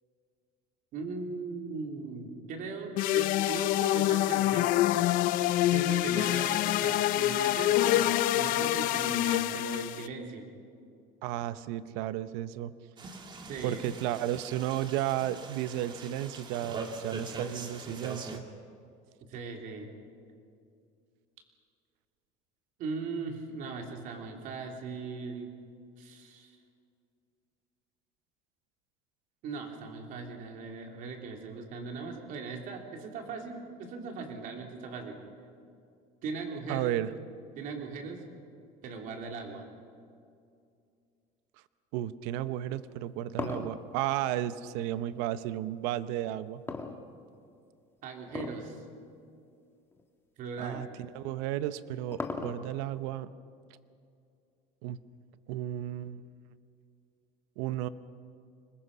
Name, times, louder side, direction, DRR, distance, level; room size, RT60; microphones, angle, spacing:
voice 1, 0.9-5.1 5.4-10.5 13.5-13.8 19.3-19.9 22.8-25.6 26.0-26.6 29.4-35.2 36.2-36.9 37.6-38.2 38.8-39.6 48.0-48.8 50.4-50.8, right 4 dB, 55° right, 2 dB, 3.4 m, -39 dB
sound 1, 3.0-10.1, left 14 dB, 60° left, 0.6 m, -26 dB
voice 2, 11.2-12.7 13.6-18.4 36.7-37.1 41.9-46.6 50.6-50.9 51.1-53.3 54.8-55.0 55.5-56.2 57.6-57.9, right 13 dB, 80° right, 14 dB, 0.9 m, -33 dB
sound 2, 13.0-18.4, right 3 dB, 30° right, 1.9 m, -42 dB
sound 3, 42.8-45.3 46.7-47.5 48.3-48.7 49.0-49.1 49.9-50.0 51.4-52.9, left 3 dB, 15° left, 1.5 m, -38 dB
25.5 x 20.5 x 5.6 m, 2.4 s
cardioid pair, 140°, 16 cm